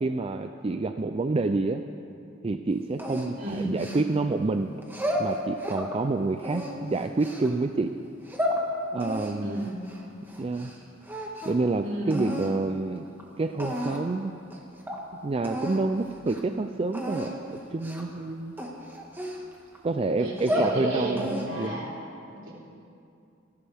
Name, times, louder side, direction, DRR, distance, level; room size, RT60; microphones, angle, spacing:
voice 1, 0.0-1.8 2.4-4.7 5.2-7.9 8.9-9.6 10.4-10.7 11.5-13.0 13.4-14.3 15.2-18.5 19.8-21.9, right 3 dB, 30° right, 7 dB, 0.4 m, -28 dB
sound 1, 3.0-4.3 4.8-5.9 6.4-7.5 8.1-8.6 9.0-10.8 11.0-11.7 12.1-12.5 13.2-13.3 13.6-14.1 14.5-14.6 14.9-15.0 15.4-15.8 16.2-16.4 16.9-17.3 17.8-18.1 18.6-19.8 20.2-20.8 21.2-21.7, equal, 10° right, 1.7 m, -32 dB
voice 2, 3.3-3.7 9.4-9.9 11.8-12.2 20.2-21.9 22.4-22.5, right 1 dB, 70° right, -5 dB, 4.0 m, -32 dB
27.0 x 11.5 x 3.5 m, 2.6 s
head